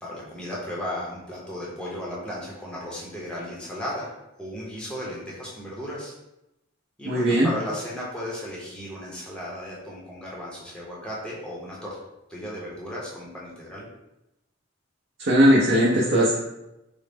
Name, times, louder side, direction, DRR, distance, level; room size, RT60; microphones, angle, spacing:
voice 1, 0.0-4.1 4.4-6.1 7.0-12.0 12.3-13.9, equal, 5° left, -6 dB, 0.6 m, -35 dB
voice 2, 7.0-7.5 15.2-16.3, equal, 50° right, -5 dB, 0.6 m, -19 dB
3.9 x 2.0 x 3.4 m, 0.91 s
head